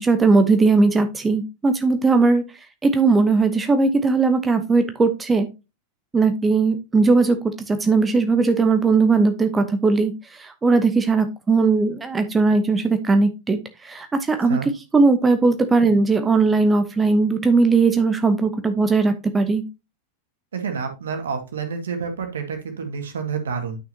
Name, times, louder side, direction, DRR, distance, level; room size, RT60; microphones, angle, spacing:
voice 1, 0.0-2.4 2.8-5.5 6.1-14.6 14.9-19.6, right 4 dB, 15° right, 8 dB, 0.9 m, -18 dB
voice 2, 20.5-23.8, right 5 dB, 65° right, 5 dB, 1.9 m, -28 dB
9.9 x 6.0 x 2.8 m, 0.26 s
figure-of-eight pair, 90°, 0 cm